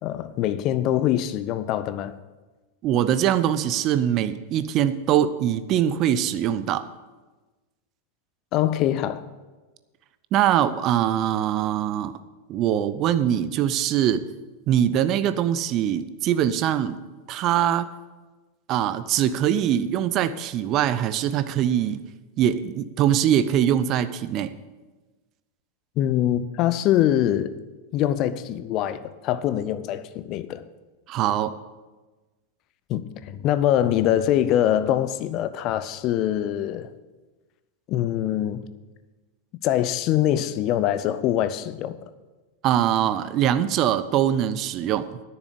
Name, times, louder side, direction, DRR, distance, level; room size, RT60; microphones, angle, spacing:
voice 1, 0.0-2.2 8.5-9.2 26.0-27.5 27.9-30.6 32.9-36.9 37.9-38.6 39.6-42.0, left 11 dB, 40° left, 0.6 m, -23 dB
voice 2, 2.8-6.9 10.3-12.2 12.5-14.3 14.7-17.0 17.3-17.9 18.7-22.0 22.4-24.5 31.1-31.5 42.6-45.2, right 10 dB, 35° right, 0.6 m, -22 dB
9.9 x 7.1 x 8.5 m
figure-of-eight pair, 90°, 0 cm